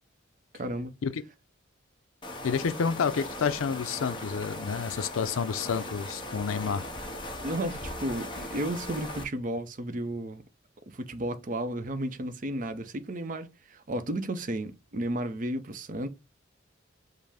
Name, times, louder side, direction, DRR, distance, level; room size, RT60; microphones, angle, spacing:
voice 1, 0.5-0.9 7.4-10.4 10.9-16.1, right 1 dB, 40° right, 0.5 m, -33 dB
sound 1, 2.2-9.2, left 1 dB, 25° left, 0.8 m, -39 dB
voice 2, 2.4-6.9, left 6 dB, 85° left, 0.4 m, -29 dB
5.4 x 2.0 x 4.8 m
head